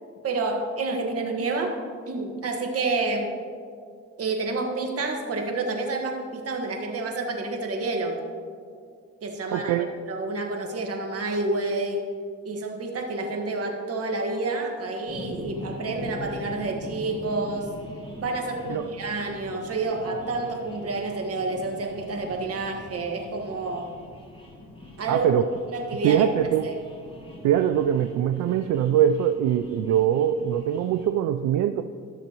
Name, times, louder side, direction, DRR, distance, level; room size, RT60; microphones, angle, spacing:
voice 1, 0.2-3.3 4.2-8.2 9.2-9.7 10.1-12.1 12.4-17.7 18.2-23.9 25.0-25.3 25.7-26.3 26.6-26.7, right 3 dB, 50° right, 2 dB, 1.5 m, -29 dB
voice 2, 9.5-9.9 18.7-18.9 25.1-25.5 26.0-26.7 27.4-31.8, right 10 dB, 75° right, 9 dB, 0.4 m, -22 dB
sound 1, 15.1-31.1, left 1 dB, 15° left, 1.8 m, -42 dB
14.5 x 6.6 x 3.0 m, 2.1 s
cardioid pair, 90°, 30 cm